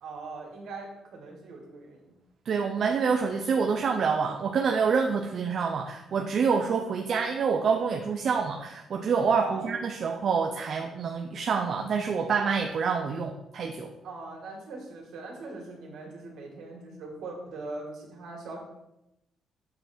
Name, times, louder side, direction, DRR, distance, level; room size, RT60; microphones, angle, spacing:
voice 1, 0.0-2.1 9.3-9.7 14.0-18.6, right 3 dB, 75° right, 0 dB, 2.2 m, -41 dB
voice 2, 2.5-13.9, right 5 dB, 55° right, 3 dB, 0.7 m, -27 dB
7.7 x 3.4 x 6.1 m, 0.89 s
cardioid pair, 90°, 0 cm